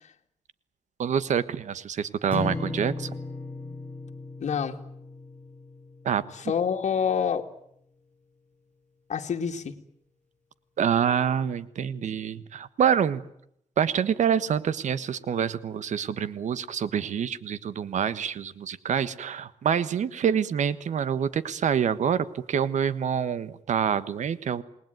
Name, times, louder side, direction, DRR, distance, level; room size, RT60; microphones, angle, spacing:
voice 1, 1.0-3.1 6.0-6.2 10.8-13.2 13.8-24.6, right 8 dB, 80° right, 15 dB, 1.4 m, -26 dB
sound 1, 2.3-6.6, left 3 dB, 10° left, 7.0 m, -36 dB
voice 2, 4.4-4.8 6.4-7.5 9.1-9.8, left 7 dB, 70° left, 5 dB, 2.3 m, -27 dB
28.0 x 20.0 x 9.3 m, 0.74 s
wide cardioid pair, 110°, 12 cm